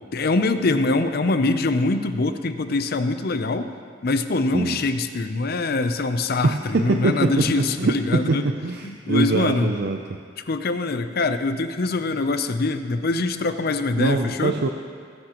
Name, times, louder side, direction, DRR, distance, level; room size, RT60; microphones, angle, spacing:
voice 1, 0.1-3.7 4.0-8.5 8.8-9.7 10.5-14.6, left 3 dB, 55° left, 9 dB, 0.6 m, -23 dB
voice 2, 6.4-10.2 14.0-14.7, right 3 dB, 60° right, 4 dB, 0.5 m, -23 dB
19.5 x 9.9 x 3.0 m, 2.1 s
head